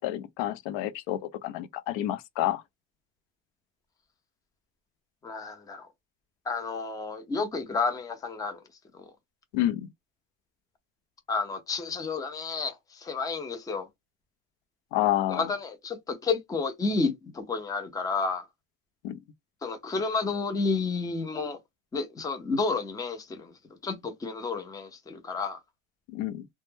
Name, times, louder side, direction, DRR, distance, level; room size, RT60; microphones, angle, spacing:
voice 1, 0.0-2.6 9.5-9.9 14.9-15.5 19.0-19.2 26.1-26.5, left 13 dB, 65° left, 0.6 m, -29 dB
voice 2, 5.2-5.9 6.5-8.6 11.3-12.7 13.0-13.9 15.3-18.5 19.6-21.6 21.9-23.4 23.8-25.6, left 4 dB, 10° left, 0.3 m, -30 dB
2.2 x 2.0 x 3.1 m
cardioid pair, 115°, 50 cm